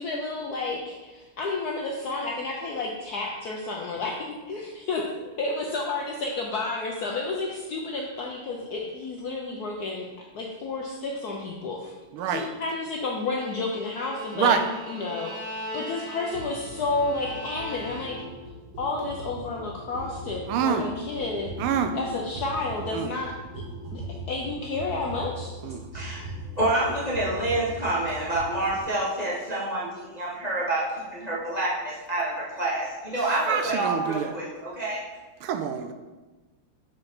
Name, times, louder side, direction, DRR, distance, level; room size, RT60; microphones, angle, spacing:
voice 1, 0.0-10.1 10.3-11.9 12.3-14.6 14.9-18.2 18.8-21.5 21.9-23.3 23.9-25.5, left 3 dB, 70° left, -1 dB, 0.9 m, -31 dB
voice 2, 12.1-12.5 14.3-14.7 20.5-20.9 21.6-21.9 22.9-23.1 25.6-25.8 33.2-34.3 35.4-35.9, right 7 dB, 85° right, 7 dB, 1.5 m, -26 dB
Bowed string instrument, 13.2-18.4, left 1 dB, 5° right, 1.3 m, -39 dB
sound 1, 16.3-28.8, right 1 dB, 55° right, 2.6 m, -39 dB
voice 3, 25.9-26.3 26.6-35.0, right 2 dB, 35° left, -7 dB, 0.6 m, -28 dB
6.3 x 4.6 x 4.4 m, 1.2 s
omnidirectional pair, 2.4 m